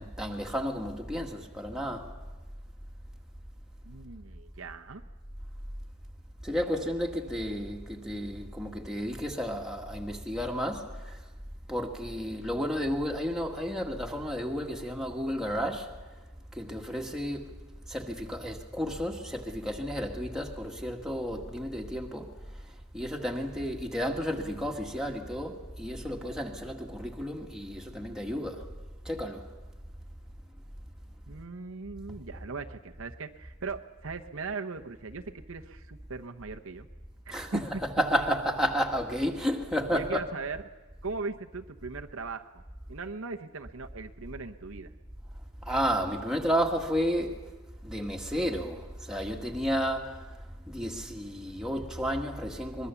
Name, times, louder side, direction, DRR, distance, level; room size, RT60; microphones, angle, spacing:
voice 1, 0.0-2.1 6.4-11.2 11.7-16.0 16.6-17.5 17.9-22.3 22.9-28.7 29.1-29.5 37.3-40.2 45.7-47.4 47.8-50.3 50.7-52.9, equal, 5° right, 1.8 m, -32 dB
voice 2, 3.8-5.0 31.3-36.9 37.3-37.6 39.9-40.6 41.0-42.6 42.9-44.9, right 4 dB, 60° right, 0.9 m, -39 dB
23.5 x 22.0 x 7.1 m
head